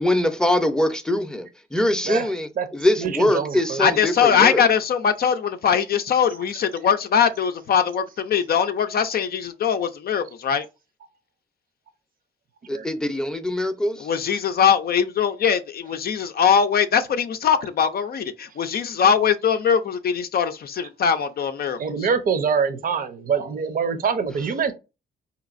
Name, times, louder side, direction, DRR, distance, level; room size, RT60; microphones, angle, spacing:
voice 1, 0.0-4.6 12.7-14.1, left 1 dB, 5° left, 0.6 m, -23 dB
voice 2, 3.0-3.8 12.7-12.9 21.8-24.7, right 6 dB, 45° right, 0.7 m, -24 dB
voice 3, 3.8-10.6 14.0-22.1, left 7 dB, 50° left, 0.5 m, -21 dB
4.0 x 2.9 x 2.5 m
cardioid pair, 90°, 20 cm